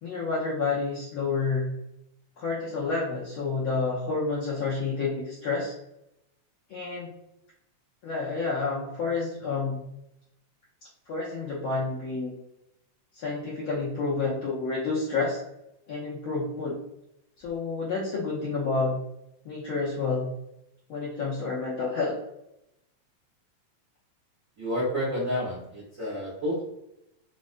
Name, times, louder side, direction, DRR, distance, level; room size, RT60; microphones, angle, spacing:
voice 1, 0.0-1.7 2.4-5.7 6.7-7.1 8.0-9.8 11.1-12.4 13.1-15.4 15.9-16.8 17.4-18.9 19.4-20.3 20.9-22.2, left 4 dB, 85° left, -6 dB, 1.1 m, -29 dB
voice 2, 24.6-26.6, equal, 90° right, -8 dB, 0.7 m, -30 dB
5.0 x 2.1 x 2.5 m, 0.83 s
omnidirectional pair, 3.3 m